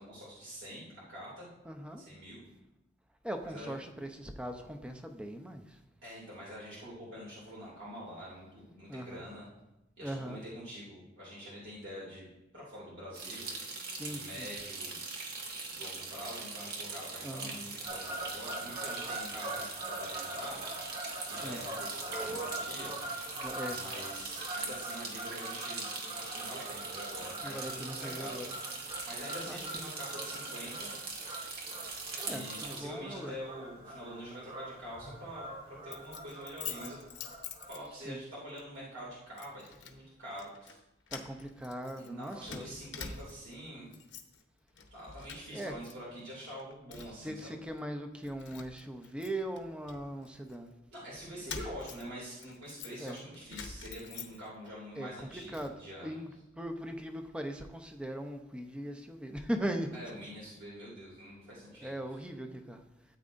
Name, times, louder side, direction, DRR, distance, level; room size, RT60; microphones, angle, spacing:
voice 1, 0.0-1.5 2.0-2.4 3.4-3.7 6.0-9.4 10.0-13.5 14.0-15.0 15.7-20.7 21.3-23.2 23.7-28.4 29.1-30.9 32.2-37.0 37.7-40.8 42.0-43.9 44.9-47.5 50.9-56.2 59.9-61.9, equal, 70° right, -6 dB, 2.6 m, -45 dB
voice 2, 1.7-2.0 3.2-5.6 8.9-9.2 10.0-10.4 13.9-14.5 17.2-17.6 21.4-21.6 23.4-23.8 27.4-28.5 29.5-29.9 31.8-31.9 32.2-33.4 38.1-38.2 41.1-42.7 45.5-45.7 47.2-50.7 53.0-53.2 55.0-59.9 61.5-62.8, right 1 dB, 5° right, 4 dB, 0.6 m, -40 dB
sound 1, 13.1-32.8, right 3 dB, 50° right, 1.3 m, -42 dB
Fowl / Bird vocalization bird call bird song, 17.8-37.7, right 2 dB, 30° right, 3.3 m, -43 dB
Keys jangling, 35.9-38.2 38.6-38.8 39.4-40.0 40.3-40.8 41.1-43.5 43.9-44.4 44.7-45.9 46.2-47.3 47.8-47.9 48.2-50.6 51.1-54.7 55.1-55.7, left 6 dB, 70° left, 0.9 m, -46 dB
13.0 x 8.5 x 2.6 m, 0.94 s
head